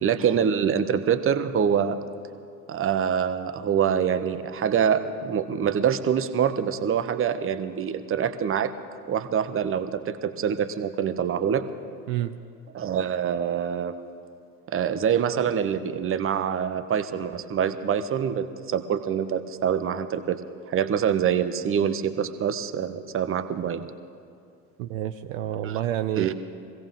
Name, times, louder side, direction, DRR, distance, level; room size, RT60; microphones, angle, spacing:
voice 1, 0.0-2.0 2.7-8.7 9.1-11.6 12.7-13.9 14.7-20.4 20.7-23.9 25.6-25.8 26.2-26.3, right 8 dB, 30° right, 10 dB, 0.9 m, -25 dB
voice 2, 24.8-26.3, right 12 dB, 60° right, 8 dB, 0.7 m, -29 dB
24.0 x 16.5 x 3.6 m, 2.4 s
figure-of-eight pair, 65°, 45 cm